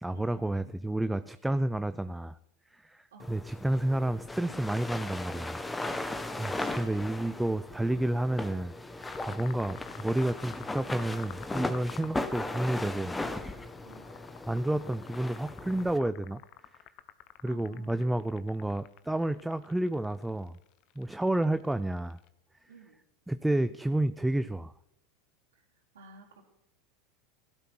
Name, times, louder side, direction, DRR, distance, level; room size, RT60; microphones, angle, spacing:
voice 1, 0.0-2.4 2.7-5.6 6.4-13.2 14.5-16.4 17.4-20.6 21.0-22.2 23.3-24.7, right 1 dB, 5° right, 12 dB, 0.5 m, -30 dB
sound 1, 3.2-16.0, left 2 dB, 10° left, 1.4 m, -37 dB
voice 2, 6.4-7.1 13.8-14.1 17.4-18.1 22.7-23.0 25.5-26.4, right 5 dB, 90° right, -6 dB, 3.4 m, -55 dB
sound 2, 9.0-22.3, left 14 dB, 55° left, 1.0 m, -49 dB
16.5 x 12.0 x 6.1 m, 0.84 s
hypercardioid pair, 95°, 0 cm